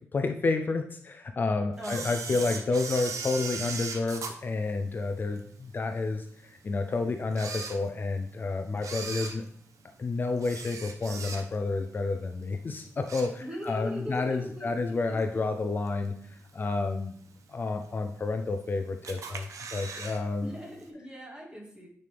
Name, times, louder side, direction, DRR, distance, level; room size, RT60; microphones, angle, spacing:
voice 1, 0.1-9.4 10.0-17.2 17.5-20.5, left 3 dB, 40° left, 6 dB, 0.5 m, -30 dB
voice 2, 1.8-2.4 13.4-15.2 20.4-21.9, equal, 15° right, -1 dB, 2.0 m, -40 dB
Camera, 1.8-5.4 5.9-6.0 6.7-6.8 7.2-8.3 8.7-11.8 12.1-12.4 12.8-13.8 14.1-14.2 15.2-15.3 15.9-16.3 16.7-16.8 17.0-17.1 17.2-17.3 18.1-18.6 19.0-20.2 20.5-20.6 20.8-20.9, right 5 dB, 85° right, 0.9 m, -38 dB
9.5 x 5.4 x 3.4 m, 0.63 s
wide cardioid pair, 150°, 5 cm